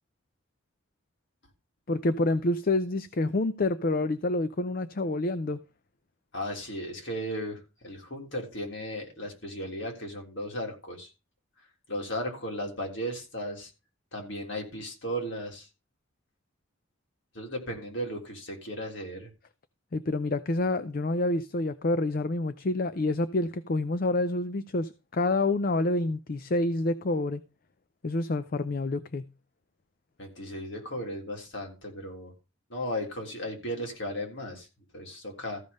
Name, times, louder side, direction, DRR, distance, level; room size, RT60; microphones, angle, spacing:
voice 1, 1.9-5.6 19.9-27.4 28.0-29.2, left 2 dB, 45° left, 0.5 m, -28 dB
voice 2, 6.3-11.1 11.9-13.7 14.1-15.7 17.3-19.3 30.2-32.3 32.7-34.7 34.9-35.6, equal, 65° left, 3.5 m, -35 dB
14.5 x 5.3 x 5.3 m
head